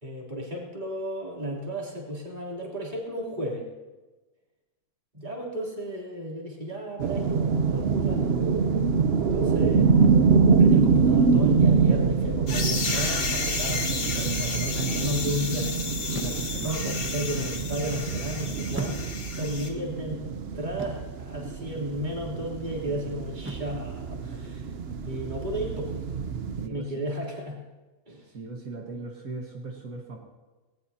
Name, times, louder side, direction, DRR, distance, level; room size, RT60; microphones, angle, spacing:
voice 1, 0.0-3.7 5.1-8.3 9.3-9.9 10.6-13.9 14.4-15.7 16.2-16.4 16.6-19.0 19.4-20.3 20.5-24.7 25.1-25.9 26.7-27.6 28.1-28.3, equal, 30° right, -4 dB, 3.5 m, -33 dB
sound 1, 7.0-26.7, right 5 dB, 50° right, 0.9 m, -25 dB
sound 2, 12.5-19.7, left 4 dB, 80° left, 1.8 m, -32 dB
voice 2, 13.9-15.1 16.1-16.8 26.6-26.9 28.3-30.2, right 3 dB, 75° right, -1 dB, 2.0 m, -38 dB
sound 3, 16.1-16.7 18.7-19.5 20.8-21.2 23.4-23.9, right 1 dB, 10° right, 1.2 m, -38 dB
19.5 x 19.5 x 2.8 m, 1.2 s
omnidirectional pair, 1.5 m